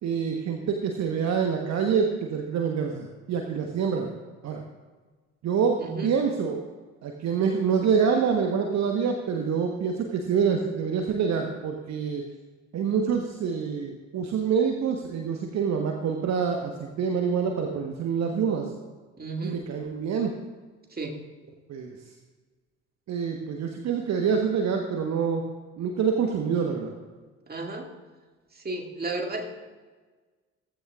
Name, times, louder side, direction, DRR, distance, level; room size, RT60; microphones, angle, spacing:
voice 1, 0.0-4.1 4.4-4.6 5.4-6.6 7.0-12.2 12.7-18.7 19.4-20.3 21.7-22.0 23.1-25.4 25.8-26.9, right 6 dB, 50° right, 3 dB, 1.2 m, -26 dB
voice 2, 5.8-6.2 19.2-19.6 20.9-21.2 27.5-27.9 28.6-29.5, right 2 dB, 25° right, 2 dB, 2.2 m, -33 dB
16.0 x 14.5 x 2.4 m, 1.4 s
figure-of-eight pair, 45°, 36 cm